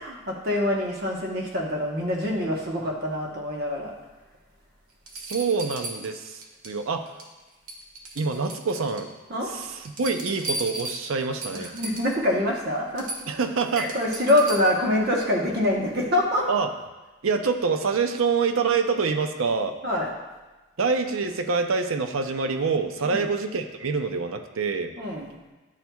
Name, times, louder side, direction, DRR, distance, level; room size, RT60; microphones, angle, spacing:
voice 1, 0.0-3.9 9.3-9.5 11.5-13.1 13.8-16.5 19.8-20.1 23.0-23.3 25.0-25.3, left 1 dB, 45° right, -1 dB, 1.1 m, -25 dB
sound 1, 4.3-4.4 5.1-6.8 7.1-7.4 7.7-9.1 9.5-12.2 12.6-12.7 13.0-14.9 16.6-16.7, right 2 dB, 85° right, 0.9 m, -36 dB
voice 2, 5.1-7.1 8.2-9.1 9.5-11.7 13.3-14.0 16.5-16.7 17.2-19.8 20.8-24.9, right 4 dB, 70° right, 6 dB, 0.5 m, -26 dB
10.5 x 4.3 x 2.3 m, 1.2 s
head